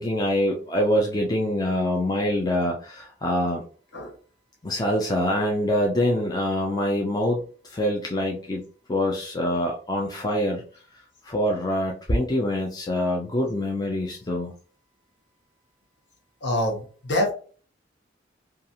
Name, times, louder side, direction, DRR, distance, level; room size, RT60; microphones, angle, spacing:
voice 1, 0.0-3.6 4.6-8.6 8.9-10.6 11.2-14.5, left 1 dB, 20° left, 0 dB, 0.4 m, -25 dB
voice 2, 16.4-17.3, left 1 dB, 60° left, 0 dB, 0.9 m, -25 dB
2.8 x 2.4 x 2.5 m, 0.40 s
head